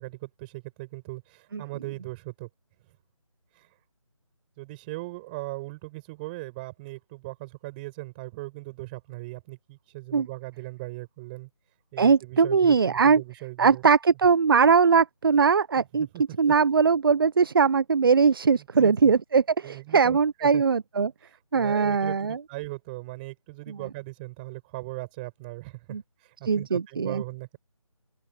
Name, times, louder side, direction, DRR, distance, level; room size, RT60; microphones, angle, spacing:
voice 1, 0.0-2.5 3.5-3.7 4.6-11.5 11.9-13.8 15.8-16.5 18.6-19.1 19.6-20.6 21.2-27.6, right 22 dB, 15° right, 7.3 m, -39 dB
voice 2, 12.0-13.2 13.6-16.1 16.4-21.1 21.5-22.4 25.9-26.0 26.5-27.2, right 5 dB, 40° right, 0.8 m, -21 dB
open air
figure-of-eight pair, 155°, 18 cm